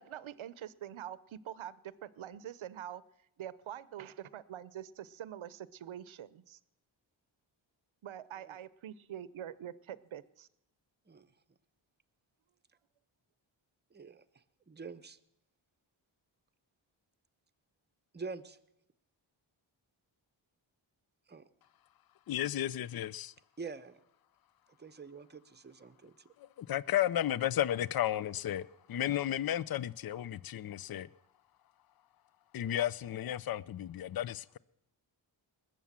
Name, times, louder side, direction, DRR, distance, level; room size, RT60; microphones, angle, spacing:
voice 1, 0.0-3.0 3.4-6.6 8.0-10.5, right 10 dB, 70° right, 0.7 m, -45 dB
voice 2, 13.9-15.2 18.1-18.6 21.3-21.5 23.6-24.0 24.8-26.3, right 4 dB, 20° right, 0.8 m, -46 dB
voice 3, 22.3-23.3 26.4-31.1 32.5-34.6, left 12 dB, 50° left, 0.5 m, -33 dB
20.0 x 7.2 x 7.4 m
cardioid pair, 60°, 49 cm